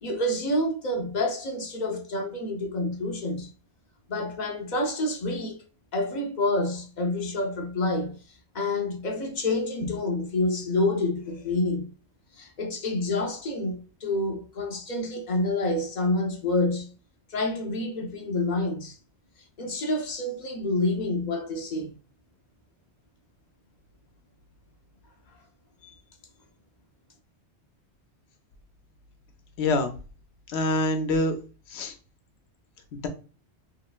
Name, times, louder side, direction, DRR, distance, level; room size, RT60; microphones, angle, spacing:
voice 1, 0.0-3.5 4.1-5.6 5.9-8.2 8.5-11.9 12.4-16.9 17.3-19.0 19.6-22.0 25.8-25.9, left 2 dB, 50° left, 0.6 m, -28 dB
voice 2, 29.6-29.9 30.5-31.4 31.7-31.9 32.9-33.1, left 2 dB, 75° left, 0.9 m, -25 dB
3.0 x 2.8 x 2.2 m
omnidirectional pair, 1.2 m